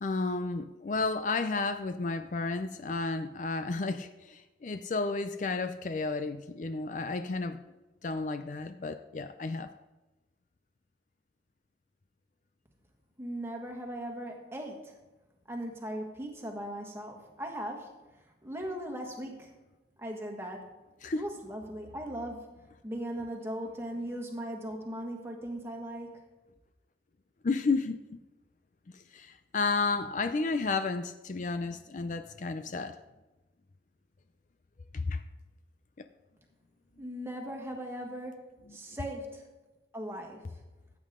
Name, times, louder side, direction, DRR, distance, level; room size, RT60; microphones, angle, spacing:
voice 1, 0.0-7.6 8.0-9.7 21.0-21.2 27.4-28.0 28.9-33.0 34.9-35.2 36.0-36.1 38.7-38.8, left 3 dB, 45° left, 10 dB, 0.4 m, -32 dB
voice 2, 13.2-15.0 15.5-17.9 18.4-19.5 20.0-20.7 21.1-22.5 22.8-26.3 37.0-39.5 39.9-40.5, right 1 dB, 15° right, 2 dB, 1.6 m, -39 dB
15.0 x 8.4 x 3.7 m, 1.1 s
head